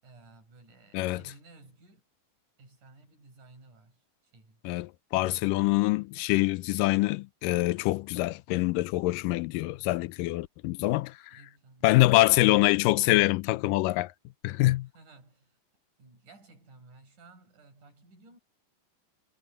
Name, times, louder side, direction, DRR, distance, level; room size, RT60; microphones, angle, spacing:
voice 1, 0.0-2.0 2.6-4.6 5.2-6.0 11.2-12.0 14.8-15.6 16.0-18.4, right 3 dB, 65° right, 8.6 m, -56 dB
voice 2, 4.7-11.2 11.8-14.1 14.4-14.9, left 19 dB, 85° left, 2.3 m, -25 dB
omnidirectional pair, 3.8 m